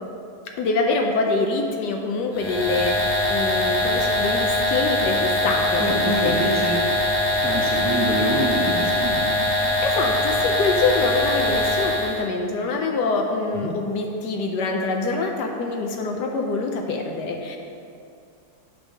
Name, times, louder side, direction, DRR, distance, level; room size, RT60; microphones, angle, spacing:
voice 1, 0.6-6.4 9.8-17.6, left 3 dB, 80° left, 2 dB, 1.2 m, -25 dB
sound 1, 2.3-12.2, left 1 dB, 15° left, 1.5 m, -22 dB
voice 2, 5.8-6.8 7.4-9.3 13.6-13.7, right 1 dB, 20° right, -4 dB, 0.4 m, -26 dB
8.6 x 3.4 x 6.2 m, 2.4 s
omnidirectional pair, 1.8 m